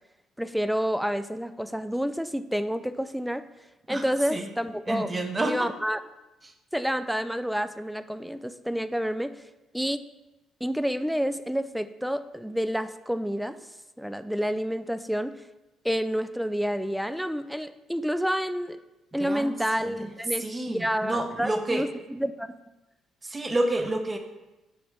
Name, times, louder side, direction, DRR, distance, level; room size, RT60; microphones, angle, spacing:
voice 1, 0.4-3.5 3.9-5.1 5.4-6.0 6.7-9.4 9.7-10.0 10.6-13.6 14.0-15.4 15.8-18.8 19.1-22.5, equal, ahead, 13 dB, 0.3 m, -29 dB
voice 2, 3.9-4.5 4.9-5.7 6.4-6.5 19.2-19.5 19.8-20.1 20.4-21.9 23.2-24.2, right 1 dB, 20° right, 6 dB, 0.8 m, -29 dB
7.7 x 5.2 x 3.4 m, 1.0 s
cardioid pair, 110°, 0 cm